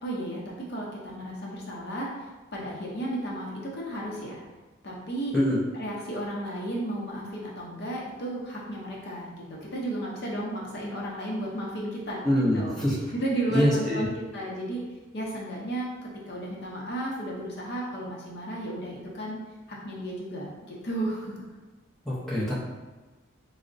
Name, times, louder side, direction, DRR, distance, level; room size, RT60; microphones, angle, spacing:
voice 1, 0.0-2.1 2.5-4.4 4.8-5.3 5.8-12.8 13.1-14.8 15.1-19.4 19.7-21.4, right 1 dB, 55° left, -3 dB, 0.6 m, -33 dB
voice 2, 12.2-13.0 13.5-14.1 22.0-22.5, equal, ahead, -9 dB, 0.6 m, -24 dB
4.4 x 2.0 x 2.5 m, 1.2 s
head